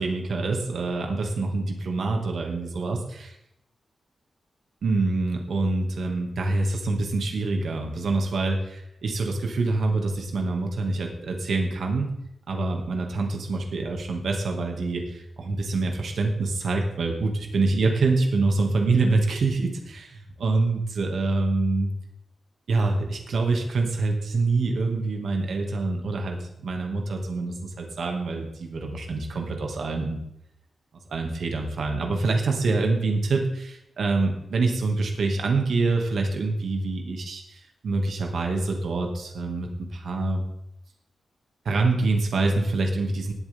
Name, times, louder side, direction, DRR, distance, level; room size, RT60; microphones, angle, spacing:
voice 1, 0.0-3.3 4.8-12.1 12.5-21.9 22.7-30.2 31.1-40.4 41.7-43.3, right 3 dB, 65° right, 2 dB, 2.1 m, -26 dB
18.5 x 8.3 x 3.6 m, 0.80 s
wide cardioid pair, 170°, 0 cm